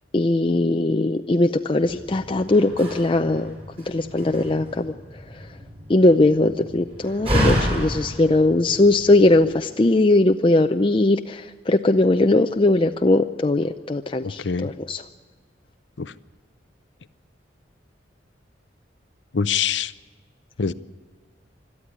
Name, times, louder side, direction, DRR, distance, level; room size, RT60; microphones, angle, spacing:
voice 1, 0.1-3.5 3.9-4.9 5.9-15.0, left 2 dB, 30° left, 6 dB, 0.5 m, -19 dB
Slam, 1.8-9.4, equal, 35° right, 6.2 m, -30 dB
voice 2, 14.2-14.7 16.0-16.1 19.3-19.9 20.6-20.7, left 6 dB, 75° left, 15 dB, 0.7 m, -24 dB
22.0 x 13.0 x 9.7 m, 1.5 s
head